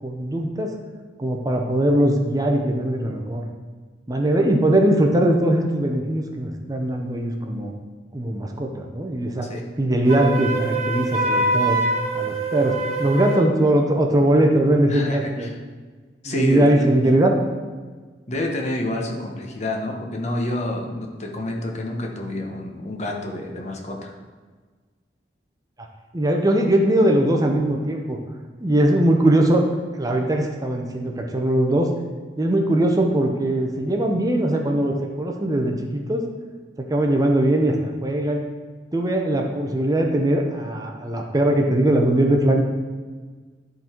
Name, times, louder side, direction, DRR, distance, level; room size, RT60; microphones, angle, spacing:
voice 1, 0.0-0.8 1.2-3.5 4.1-7.7 8.1-9.5 9.8-11.8 12.1-15.5 16.3-17.4 26.1-28.2 28.6-29.7 29.9-31.9 32.4-36.2 36.8-37.7 38.0-38.4 38.9-42.6, right 1 dB, 20° right, 2 dB, 0.7 m, -20 dB
Wind instrument woodwind instrument, 10.1-13.5, right 2 dB, 35° right, 1.4 m, -24 dB
voice 2, 14.9-15.6 16.2-16.9 18.3-24.1, left 1 dB, 40° left, 0 dB, 1.0 m, -28 dB
11.0 x 4.0 x 4.4 m, 1.4 s
head